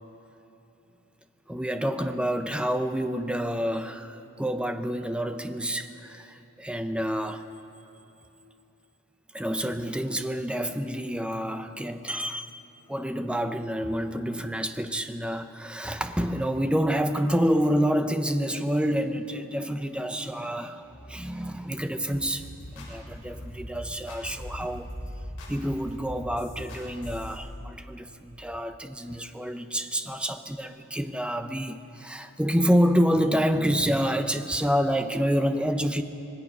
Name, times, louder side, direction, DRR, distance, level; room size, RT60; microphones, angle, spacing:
voice 1, 1.5-7.4 9.3-12.6 12.9-25.0 25.5-36.0, equal, 5° right, 8 dB, 0.7 m, -28 dB
sound 1, 22.1-27.3, left 1 dB, 55° left, 6.6 m, -40 dB
26.0 x 20.5 x 6.2 m, 2.9 s
head